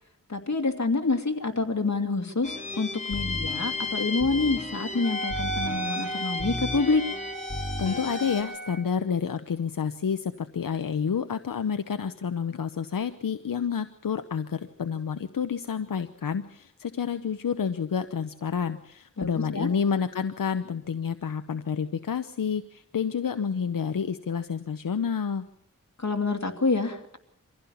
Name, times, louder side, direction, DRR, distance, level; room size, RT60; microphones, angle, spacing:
voice 1, 0.3-7.0 19.2-19.7 26.0-27.2, left 3 dB, 55° left, 4 dB, 2.5 m, -27 dB
sound 1, 2.4-8.4, left 2 dB, 20° left, 3.3 m, -33 dB
Wind instrument woodwind instrument, 5.0-8.9, right 3 dB, 65° right, 2.9 m, -36 dB
voice 2, 7.8-25.5, left 6 dB, 85° left, 9 dB, 0.8 m, -29 dB
24.5 x 15.5 x 7.0 m, 0.72 s
wide cardioid pair, 50°, 32 cm